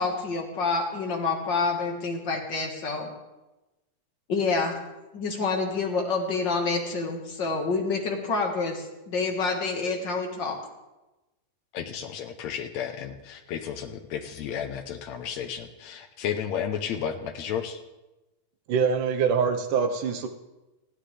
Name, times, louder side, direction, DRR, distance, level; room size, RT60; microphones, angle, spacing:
voice 1, 0.0-3.1 4.3-4.8 5.1-10.6, left 4 dB, 40° left, 1 dB, 2.0 m, -27 dB
voice 2, 11.7-17.8, left 8 dB, 70° left, 8 dB, 2.0 m, -33 dB
voice 3, 18.7-20.3, right 6 dB, 80° right, 5 dB, 2.6 m, -24 dB
28.5 x 9.8 x 3.4 m, 1.0 s
omnidirectional pair, 3.6 m